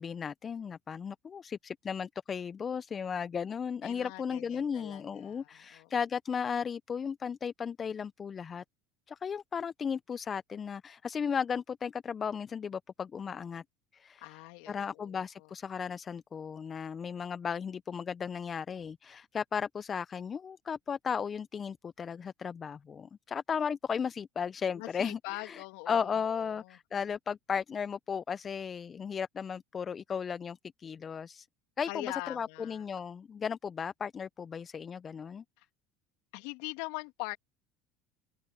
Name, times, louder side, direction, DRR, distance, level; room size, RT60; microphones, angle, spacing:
voice 1, 0.0-8.6 9.1-13.6 13.9-14.4 14.7-31.5 31.8-35.4, left 6 dB, 35° left, 0.7 m, -35 dB
voice 2, 3.8-5.9 14.2-15.5 24.7-26.8 31.9-32.8 35.6-35.7 36.3-37.4, left 26 dB, 70° left, 2.7 m, -43 dB
hypercardioid pair, 75°, 0 cm